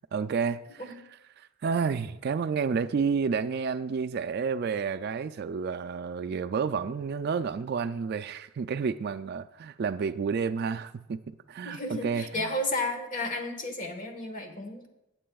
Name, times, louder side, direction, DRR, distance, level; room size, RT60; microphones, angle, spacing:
voice 1, 0.1-0.9 1.4-11.2 11.5-12.5, right 5 dB, 50° right, 12 dB, 0.3 m, -30 dB
voice 2, 11.6-14.9, left 2 dB, 40° left, 3 dB, 1.3 m, -33 dB
18.0 x 7.5 x 2.3 m, 0.91 s
head